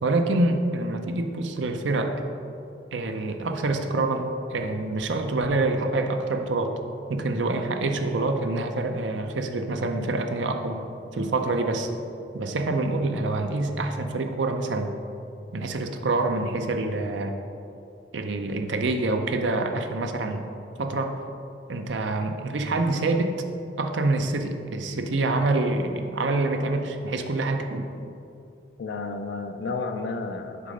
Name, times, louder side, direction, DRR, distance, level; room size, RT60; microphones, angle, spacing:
voice 1, 0.0-2.2 2.9-6.8 7.1-10.8 11.1-11.9 12.3-14.9 15.5-17.4 18.1-20.5 20.8-21.2 21.7-23.4 23.8-27.9, right 2 dB, 80° right, 5 dB, 0.5 m, -26 dB
voice 2, 28.8-30.7, left 3 dB, 70° left, 6 dB, 0.4 m, -32 dB
6.8 x 3.7 x 5.3 m, 2.7 s
head